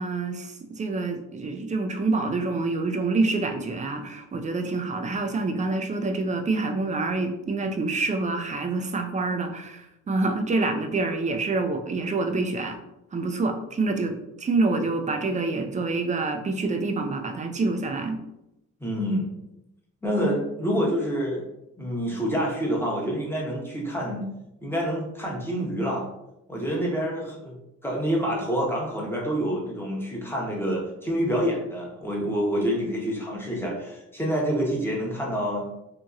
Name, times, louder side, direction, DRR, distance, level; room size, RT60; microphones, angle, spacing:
voice 1, 0.0-12.8 13.1-18.2, right 3 dB, 25° right, 5 dB, 0.4 m, -27 dB
voice 2, 18.8-19.3 20.0-21.4 21.8-24.3 24.6-26.1 26.5-27.5 27.8-35.6, equal, 5° left, -3 dB, 0.8 m, -27 dB
2.8 x 2.7 x 2.4 m, 0.86 s
cardioid pair, 90°, 30 cm